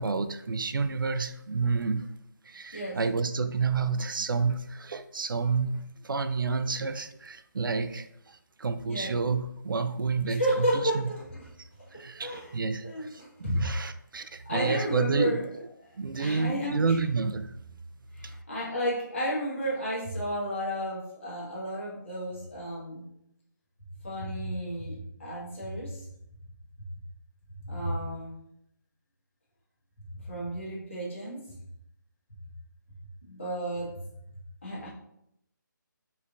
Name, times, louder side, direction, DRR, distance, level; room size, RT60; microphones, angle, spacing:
voice 1, 0.0-2.0 2.5-8.1 8.6-10.7 10.9-11.0 11.9-15.4 16.0-17.5 18.2-18.3, right 4 dB, 85° right, 10 dB, 0.5 m, -29 dB
voice 2, 10.3-11.5 11.9-12.5 12.8-13.6 14.4-15.5 15.8-15.9 16.2-17.0 18.1-23.1 24.0-26.1 27.6-28.4 30.1-31.4 33.2-34.0 34.6-34.9, equal, 40° left, -6 dB, 1.5 m, -32 dB
5.3 x 3.2 x 2.6 m, 0.77 s
hypercardioid pair, 180°, 11 cm